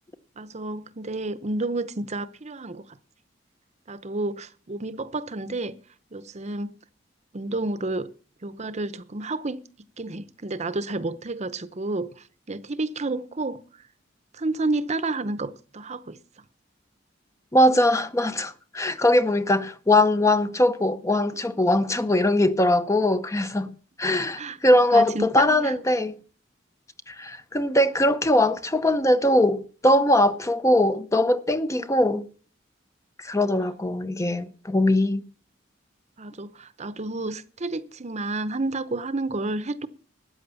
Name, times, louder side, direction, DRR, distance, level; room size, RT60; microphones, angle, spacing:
voice 1, 0.4-2.8 3.9-5.8 6.1-6.7 7.3-8.1 8.4-9.6 10.0-13.8 14.3-16.2 24.4-25.7 36.2-39.9, right 2 dB, 35° right, 0.8 m, -30 dB
voice 2, 17.5-23.7 24.0-26.1 27.1-32.3 33.2-35.2, left 1 dB, 15° left, 0.7 m, -21 dB
13.5 x 9.3 x 7.0 m
head